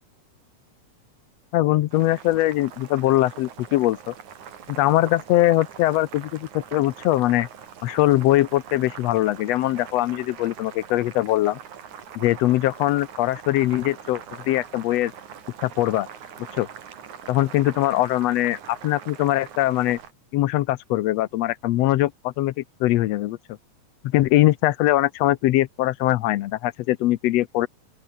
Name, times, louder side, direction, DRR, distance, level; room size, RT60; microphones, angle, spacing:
voice 1, 1.5-4.1 4.7-7.5 7.8-11.6 12.1-15.1 15.6-16.1 16.6-16.7 17.3-20.0 20.3-23.4 24.0-27.7, left 15 dB, 70° left, 1.7 m, -22 dB
Boiling, 1.9-20.1, right 8 dB, 75° right, 3.8 m, -42 dB
open air
omnidirectional pair, 3.5 m